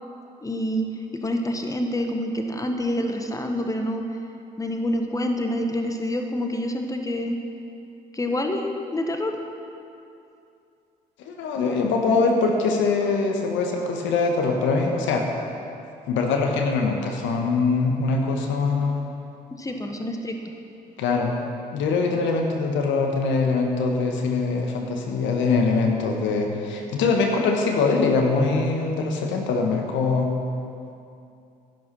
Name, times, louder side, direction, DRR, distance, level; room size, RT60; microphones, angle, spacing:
voice 1, 0.4-0.9 1.2-4.0 4.6-7.4 8.1-9.3 19.6-20.3, left 1 dB, 15° left, 4 dB, 1.4 m, -27 dB
voice 2, 11.2-15.3 16.1-19.0 21.0-21.4 21.7-30.3, left 4 dB, 65° left, 2 dB, 1.4 m, -23 dB
11.5 x 11.0 x 5.7 m, 2.6 s
hypercardioid pair, 50°, 21 cm